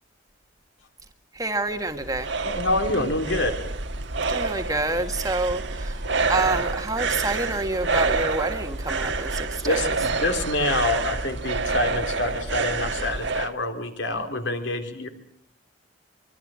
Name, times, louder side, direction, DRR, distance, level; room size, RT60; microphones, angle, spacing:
voice 1, 1.3-2.3 4.3-6.0 6.3-9.8 14.1-14.3, right 2 dB, 20° right, 6 dB, 1.6 m, -28 dB
sound 1, 1.7-13.5, right 3 dB, 65° right, 1.5 m, -28 dB
voice 2, 2.5-3.6 9.6-15.1, left 2 dB, 65° left, 6 dB, 3.3 m, -26 dB
25.0 x 24.0 x 7.5 m, 0.71 s
head